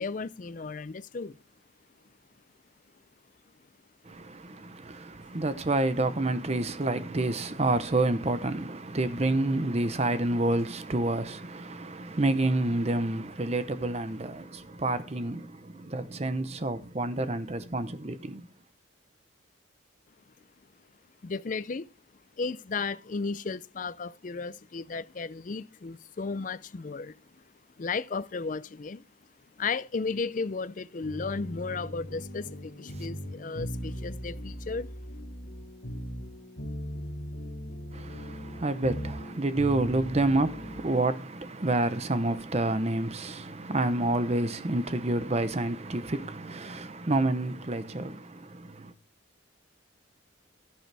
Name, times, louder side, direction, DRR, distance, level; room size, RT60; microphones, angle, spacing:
voice 1, 0.0-1.4 5.3-5.4 21.2-21.9 22.4-27.4 27.8-29.0 29.6-34.9, left 4 dB, 40° left, 0.4 m, -34 dB
voice 2, 4.1-18.5 37.9-48.9, right 2 dB, 30° right, 0.7 m, -29 dB
sound 1, 31.0-40.9, equal, 70° left, 2.0 m, -39 dB
11.5 x 10.5 x 3.4 m
head